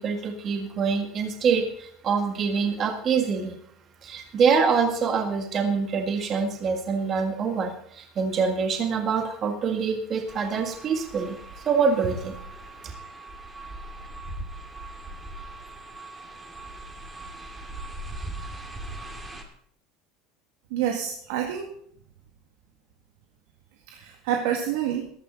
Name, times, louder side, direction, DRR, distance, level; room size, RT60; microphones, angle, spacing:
voice 1, 0.0-3.6 4.0-11.4 11.6-12.4 12.8-12.9, right 5 dB, 30° right, 5 dB, 1.7 m, -25 dB
sound 1, 10.3-19.4, right 2 dB, 10° right, 2.1 m, -40 dB
voice 2, 20.7-21.7 23.9-25.1, right 9 dB, 90° right, 3 dB, 2.0 m, -28 dB
15.0 x 13.0 x 3.9 m, 0.65 s
cardioid pair, 170°, 0 cm